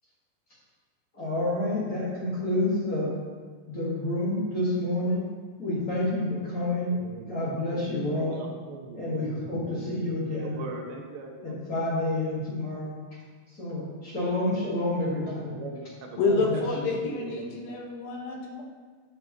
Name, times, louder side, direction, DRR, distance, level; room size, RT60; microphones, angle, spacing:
voice 1, 1.1-3.2 3.7-5.3 5.6-7.0 7.3-8.4 8.9-10.6 11.4-12.9 13.5-15.6 16.2-16.9, left 1 dB, 30° left, -8 dB, 1.7 m, -29 dB
voice 2, 6.9-11.6 15.4-17.8, right 4 dB, 85° right, 1 dB, 2.6 m, -40 dB
voice 3, 16.2-18.6, left 3 dB, 80° left, -1 dB, 2.9 m, -28 dB
9.1 x 6.6 x 3.0 m, 1.5 s
omnidirectional pair, 4.1 m